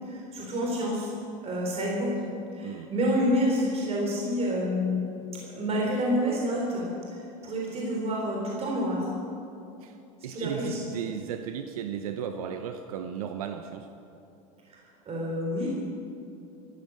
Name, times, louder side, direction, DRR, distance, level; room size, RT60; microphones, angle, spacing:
voice 1, 0.0-1.1 1.4-5.1 5.3-6.9 7.4-9.1 10.3-10.9 14.7-15.7, equal, 35° right, -2 dB, 3.6 m, -28 dB
voice 2, 10.2-13.9, right 8 dB, 90° right, 7 dB, 0.8 m, -35 dB
15.5 x 12.5 x 6.5 m, 2.8 s
supercardioid pair, 100°, 18 cm